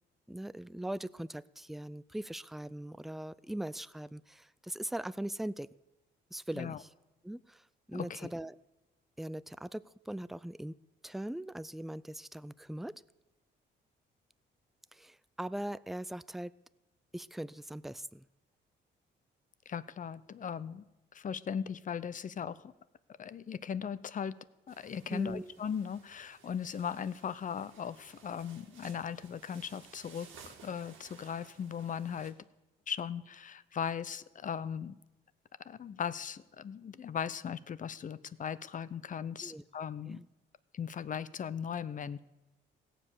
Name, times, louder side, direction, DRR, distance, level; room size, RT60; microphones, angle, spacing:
voice 1, 0.3-5.7 6.3-6.9 7.2-8.6 9.2-10.8 11.0-13.0 14.9-16.5 17.1-18.2 25.1-25.6 39.4-39.6 40.1-40.3, right 1 dB, ahead, 17 dB, 0.3 m, -40 dB
voice 2, 7.9-8.3 19.7-20.8 21.1-22.7 23.2-24.3 24.7-30.3 30.6-32.4 32.9-34.9 35.7-40.2 40.7-42.2, left 7 dB, 40° left, 16 dB, 0.6 m, -38 dB
sound 1, 24.7-32.3, right 6 dB, 90° right, 1.9 m, -57 dB
17.0 x 7.6 x 6.8 m, 1.0 s
cardioid pair, 90°, 20 cm